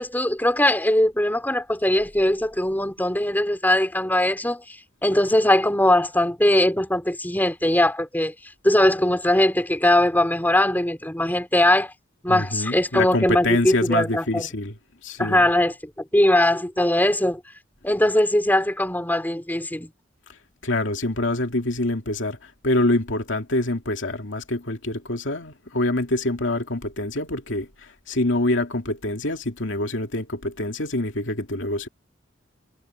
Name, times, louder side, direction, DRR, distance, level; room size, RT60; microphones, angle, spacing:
voice 1, 0.0-4.6 5.0-8.3 8.6-11.9 12.2-14.5 15.2-15.7 16.1-17.4 17.8-19.9, left 1 dB, 10° left, 4.3 m, -20 dB
voice 2, 12.3-14.7 15.0-15.4 20.6-31.9, left 2 dB, 70° left, 2.6 m, -25 dB
head